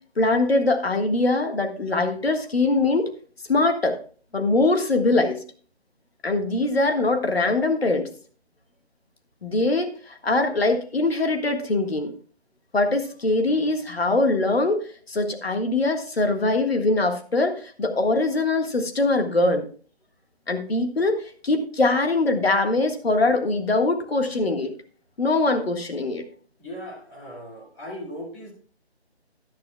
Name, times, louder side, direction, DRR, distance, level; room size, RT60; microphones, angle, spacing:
voice 1, 0.2-3.1 3.5-4.0 4.3-5.4 6.2-8.1 9.4-12.1 12.7-14.8 15.1-19.7 20.5-21.2 21.4-24.7 25.2-26.2, left 2 dB, 65° left, 5 dB, 1.7 m, -22 dB
voice 2, 26.6-28.5, equal, 15° left, -3 dB, 2.3 m, -38 dB
13.5 x 10.5 x 2.3 m, 0.41 s
figure-of-eight pair, 155°, 32 cm